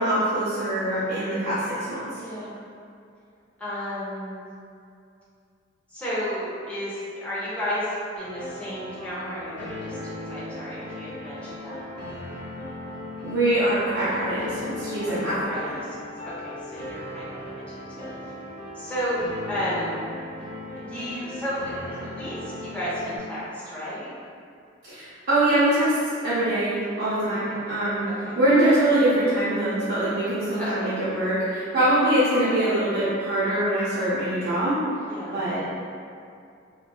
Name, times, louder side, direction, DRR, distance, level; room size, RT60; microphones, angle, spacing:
voice 1, 0.0-2.1 13.2-15.6 24.9-26.0 26.2-28.1 28.4-34.8 35.3-35.6, right 1 dB, 55° right, -12 dB, 0.6 m, -23 dB
voice 2, 2.2-2.6 3.6-4.4 5.9-7.9 8.2-12.2 15.1-17.6 18.0-18.1 18.7-20.0 20.8-24.1 27.2-27.6 28.1-28.4 30.5-30.8 31.7-32.0 35.1-35.5, equal, 5° left, -11 dB, 0.7 m, -33 dB
sound 1, 8.2-23.2, left 2 dB, 60° left, 1.4 m, -37 dB
3.0 x 2.6 x 2.2 m, 2.4 s
head